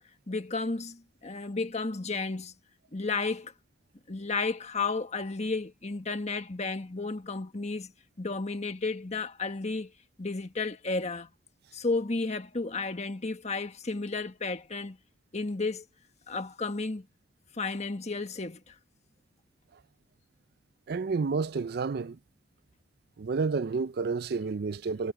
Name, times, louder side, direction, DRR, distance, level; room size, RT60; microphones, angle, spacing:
voice 1, 0.3-2.5 2.9-3.5 4.1-7.9 8.2-9.9 10.2-11.3 11.7-15.0 15.3-15.8 16.3-17.1 17.5-18.7, left 3 dB, 40° left, 1.5 m, -32 dB
voice 2, 20.9-22.2 23.2-25.1, right 4 dB, 60° right, 0.4 m, -30 dB
head